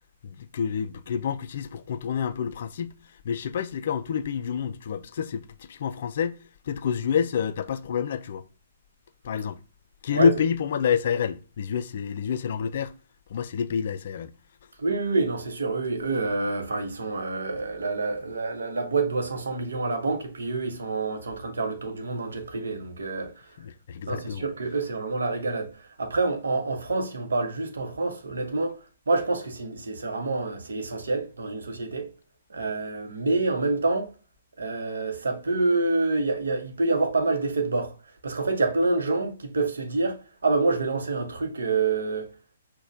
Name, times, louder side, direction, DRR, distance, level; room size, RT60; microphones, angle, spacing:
voice 1, 0.2-3.0 3.2-8.4 9.2-9.6 10.0-12.9 13.3-14.3 23.6-24.5, left 7 dB, 45° left, 0.3 m, -28 dB
voice 2, 14.8-23.3 24.0-28.8 29.1-32.1 32.5-34.1 34.6-37.9 38.2-40.2 40.4-42.3, right 3 dB, 65° right, 0.9 m, -27 dB
5.9 x 2.2 x 2.6 m
figure-of-eight pair, 125°, 0 cm